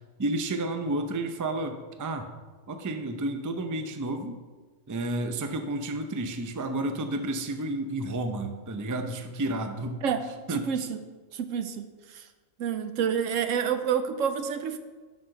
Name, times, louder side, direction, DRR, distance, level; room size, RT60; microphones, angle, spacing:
voice 1, 0.2-2.3 2.7-4.4 4.9-10.0 10.5-10.9, right 2 dB, 25° right, 6 dB, 0.4 m, -31 dB
voice 2, 10.5-11.0 11.3-11.9 12.1-12.2 12.6-14.8, right 7 dB, 80° right, 9 dB, 1.0 m, -28 dB
11.0 x 6.3 x 3.8 m, 1.4 s
omnidirectional pair, 1.3 m